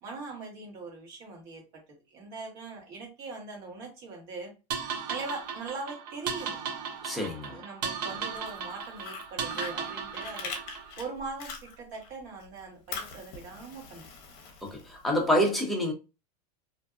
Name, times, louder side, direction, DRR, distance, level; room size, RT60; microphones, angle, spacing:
voice 1, 0.0-1.8 2.1-4.5 5.1-6.6 7.5-10.5 11.0-14.1, right 3 dB, 45° right, 1.2 m, -41 dB
sound 1, 4.7-10.9, right 6 dB, 80° right, 0.6 m, -36 dB
voice 2, 7.0-7.6 14.6-15.9, equal, ahead, 0.7 m, -27 dB
Fire, 8.2-12.1 12.4-15.2, left 5 dB, 50° left, 0.7 m, -42 dB
2.6 x 2.2 x 2.4 m
supercardioid pair, 135°, 21 cm